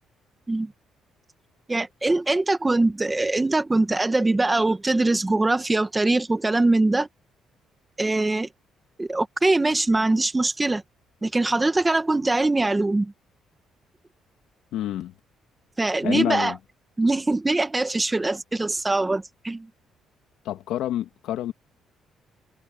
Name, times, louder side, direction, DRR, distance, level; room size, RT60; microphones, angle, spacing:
voice 1, 1.7-7.1 8.0-8.5 9.0-10.8 11.2-13.1 15.8-16.5 17.0-19.7, right 2 dB, 10° right, 1.2 m, -22 dB
voice 2, 14.7-15.1 16.0-16.6 20.5-21.5, left 12 dB, 85° left, 1.7 m, -27 dB
cardioid pair, 165°, 0 cm